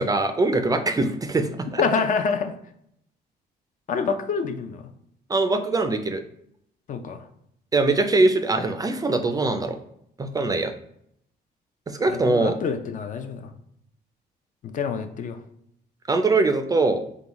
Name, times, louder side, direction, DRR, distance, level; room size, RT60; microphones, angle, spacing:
voice 1, 0.0-1.8 5.3-6.2 7.7-9.8 10.2-10.7 11.9-12.6 16.1-17.0, right 3 dB, 20° right, 8 dB, 0.4 m, -22 dB
voice 2, 1.8-2.5 3.9-4.9 6.9-7.3 12.1-13.5 14.6-15.4, left 5 dB, 50° left, 8 dB, 0.5 m, -27 dB
3.9 x 3.4 x 2.9 m, 0.72 s
cardioid pair, 115°, 17 cm